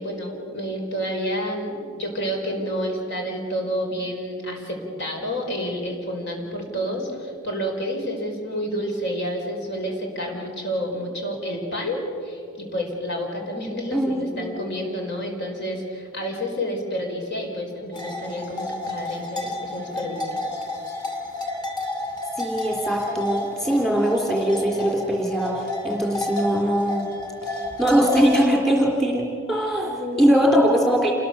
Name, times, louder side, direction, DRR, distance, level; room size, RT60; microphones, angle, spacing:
voice 1, 0.0-20.4 29.8-30.3, equal, 50° left, 1 dB, 5.1 m, -29 dB
voice 2, 13.9-14.6 22.4-27.1 27.8-31.1, equal, ahead, -1 dB, 3.4 m, -21 dB
sound 1, 17.9-28.5, left 2 dB, 20° left, 2.5 m, -31 dB
28.5 x 21.0 x 7.1 m, 2.4 s
head